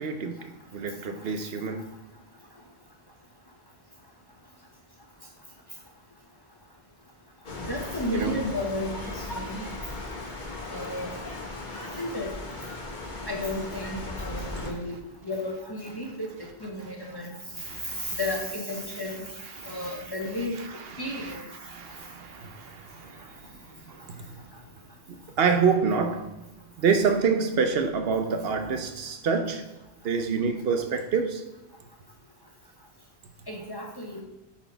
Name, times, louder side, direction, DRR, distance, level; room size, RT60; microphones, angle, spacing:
voice 1, 0.0-1.8 8.1-8.5 14.6-14.7 17.6-18.2 19.6-20.0 20.6-24.3 25.1-26.4 26.8-29.7 30.0-31.5, right 5 dB, 70° right, 0.9 m, -28 dB
sound 1, 7.4-14.7, left 2 dB, 50° left, 1.3 m, -37 dB
voice 2, 7.7-9.6 10.7-11.2 12.0-12.4 13.3-17.4 17.9-19.3 19.6-20.6 21.0-21.4 33.5-34.2, left 1 dB, 25° left, 0.9 m, -33 dB
8.5 x 4.1 x 4.5 m
omnidirectional pair, 1.1 m